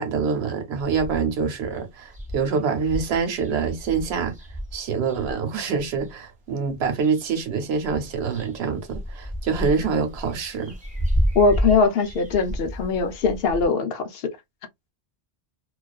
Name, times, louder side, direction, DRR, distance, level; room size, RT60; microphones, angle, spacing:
voice 1, 0.0-4.4 4.7-10.7, right 5 dB, 85° right, 1.0 m, -25 dB
sound 1, 0.8-1.4 1.8-1.9 2.1-6.1 6.7-7.5 7.8-13.7, equal, 10° right, 0.7 m, -31 dB
voice 2, 11.3-14.4, left 4 dB, 70° left, 0.8 m, -21 dB
2.3 x 2.3 x 2.3 m
omnidirectional pair, 1.1 m